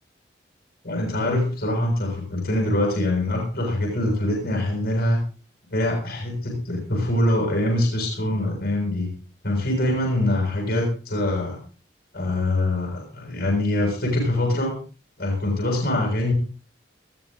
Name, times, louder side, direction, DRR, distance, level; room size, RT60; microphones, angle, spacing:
voice 1, 0.8-5.2 5.7-9.1 9.4-11.6 12.1-14.8 15.2-16.3, left 1 dB, 55° left, 0 dB, 6.6 m, -24 dB
20.0 x 14.0 x 3.8 m, 0.36 s
head